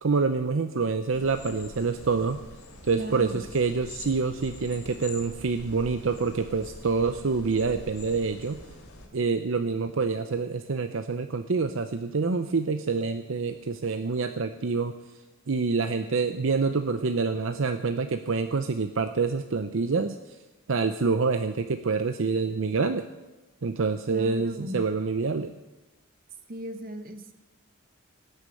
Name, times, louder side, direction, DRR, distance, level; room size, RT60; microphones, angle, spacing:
voice 1, 0.0-2.4 2.8-8.6 9.1-14.9 15.5-20.2 20.7-23.0 23.6-25.5, right 4 dB, 65° right, 8 dB, 0.6 m, -27 dB
sound 1, 1.1-9.1, left 2 dB, 90° left, 2.9 m, -45 dB
voice 2, 2.9-3.4 24.1-24.8 26.5-27.3, equal, 40° right, 8 dB, 1.1 m, -36 dB
17.5 x 6.6 x 8.5 m, 1.1 s
head